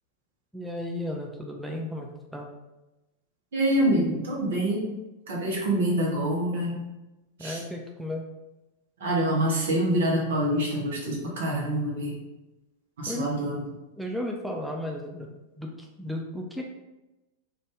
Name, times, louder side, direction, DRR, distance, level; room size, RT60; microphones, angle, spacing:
voice 1, 0.5-2.5 7.4-8.2 13.1-13.3 14.0-15.3 15.6-16.6, left 1 dB, ahead, 1 dB, 0.3 m, -34 dB
voice 2, 3.5-4.9 5.3-6.7 7.4-7.6 9.0-12.2 13.0-13.6, right 1 dB, 60° right, -3 dB, 0.7 m, -26 dB
2.6 x 2.3 x 3.3 m, 1.0 s
figure-of-eight pair, 90°, 0 cm